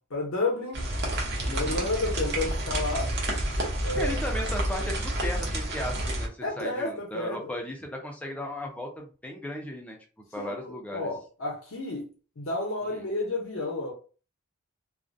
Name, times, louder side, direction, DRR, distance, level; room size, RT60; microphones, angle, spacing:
voice 1, 0.1-0.8 1.4-3.1 3.8-4.2 6.4-7.4 10.4-10.6 10.9-12.1 12.4-13.9, left 2 dB, 65° left, 0.7 m, -31 dB
sound 1, 0.7-6.3, right 1 dB, 50° right, 0.7 m, -29 dB
voice 2, 1.4-1.9 4.0-10.0 10.3-11.1 12.8-13.0, left 1 dB, 5° left, 0.4 m, -36 dB
2.3 x 2.1 x 2.5 m
head